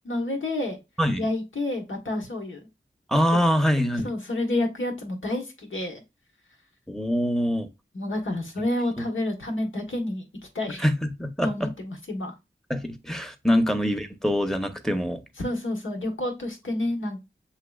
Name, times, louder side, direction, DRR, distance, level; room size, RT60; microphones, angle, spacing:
voice 1, 0.0-0.8 1.2-2.7 3.3-3.4 4.0-6.0 7.9-10.3 10.5-10.9 11.4-12.3 13.5-13.7 15.4-17.2, left 1 dB, 80° left, 1.3 m, -29 dB
voice 2, 3.1-4.1 6.9-7.7 10.8-11.7 12.7-15.2, equal, ahead, 0.8 m, -24 dB
7.3 x 2.8 x 2.3 m
wide cardioid pair, 50°, 20 cm